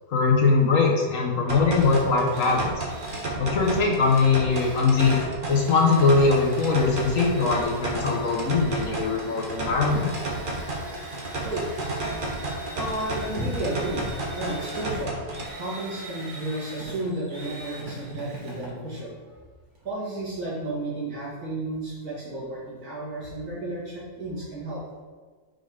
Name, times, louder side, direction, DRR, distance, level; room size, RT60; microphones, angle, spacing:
voice 1, 0.1-2.9 3.4-5.2 5.5-10.1, left 4 dB, 60° left, 0 dB, 1.3 m, -21 dB
sound 1, 1.5-15.5, right 2 dB, 35° right, 1.1 m, -32 dB
Drill, 1.8-19.9, right 1 dB, 90° right, 2.1 m, -43 dB
voice 2, 11.4-11.9 12.3-15.3 15.5-19.4 19.8-24.8, right 1 dB, 70° right, -6 dB, 2.7 m, -32 dB
6.0 x 5.0 x 5.0 m, 1.5 s
omnidirectional pair, 1.6 m